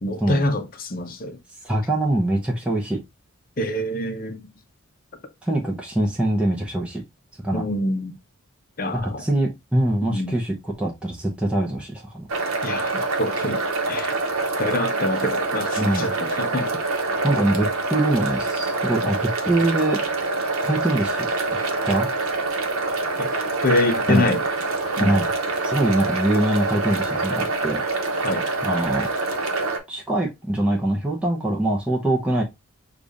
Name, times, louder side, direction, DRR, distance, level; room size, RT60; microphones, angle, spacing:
voice 1, 0.0-1.4 3.6-4.4 7.5-8.2 8.8-9.2 10.1-10.3 12.6-14.1 14.6-16.8 23.2-23.3 23.6-24.4 25.0-25.1 28.2-28.5, left 1 dB, 40° left, 0.7 m, -25 dB
voice 2, 1.6-3.0 5.4-7.0 7.4-7.6 8.9-12.3 15.8-16.1 17.2-20.0 20.6-21.6 21.8-22.1 24.1-24.2 25.0-25.2 25.6-27.8 28.1-28.2 28.6-29.1 29.9-32.4, right 1 dB, 5° right, 0.7 m, -23 dB
sound 1, 12.3-29.8, right 3 dB, 75° right, 0.9 m, -25 dB
6.6 x 2.4 x 2.5 m
head